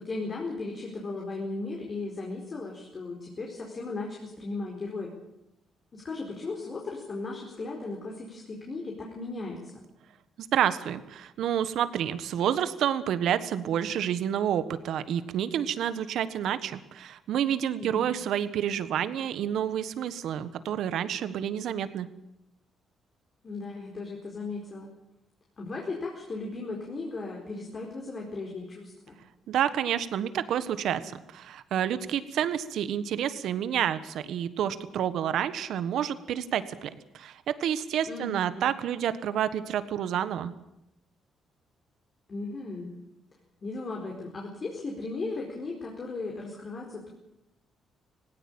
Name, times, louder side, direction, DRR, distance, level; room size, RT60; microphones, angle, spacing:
voice 1, 0.0-5.1 5.9-9.8 17.8-18.1 23.4-24.9 25.6-29.2 38.0-38.6 42.3-42.9 43.6-47.1, left 3 dB, 40° left, -1 dB, 4.5 m, -36 dB
voice 2, 10.5-22.1 29.5-40.5, right 9 dB, 75° right, 13 dB, 1.4 m, -29 dB
18.0 x 17.0 x 8.8 m, 0.86 s
cardioid pair, 90°, 0 cm